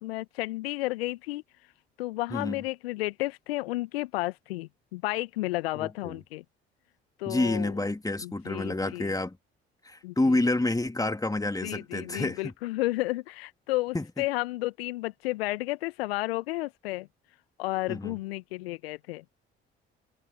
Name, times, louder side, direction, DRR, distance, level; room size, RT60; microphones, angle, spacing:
voice 1, 0.0-1.4 2.0-6.4 7.2-7.7 8.2-9.1 10.0-10.1 11.6-17.1 17.6-19.2, left 19 dB, 75° left, 1.4 m, -32 dB
voice 2, 5.8-6.2 7.3-9.4 9.8-12.5 13.9-14.0 17.9-18.2, left 2 dB, 10° left, 2.5 m, -28 dB
figure-of-eight pair, 50°, 31 cm